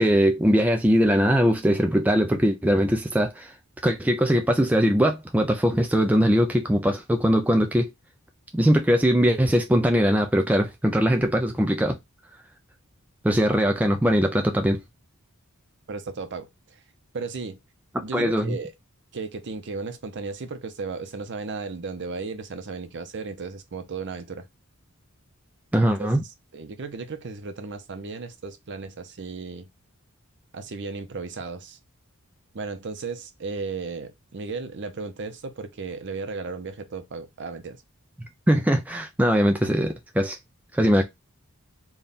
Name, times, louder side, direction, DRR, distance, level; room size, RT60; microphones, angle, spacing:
voice 1, 0.0-3.5 3.8-7.9 8.5-12.0 13.2-14.8 18.1-18.6 25.7-26.2 38.5-40.4 40.7-41.0, equal, 5° right, 0.3 m, -21 dB
voice 2, 15.9-16.8 17.1-17.6 18.0-18.7 19.1-24.5 26.0-26.1 26.5-29.7 30.5-31.8 32.5-37.8, right 4 dB, 55° right, 0.7 m, -35 dB
3.5 x 2.3 x 4.0 m
head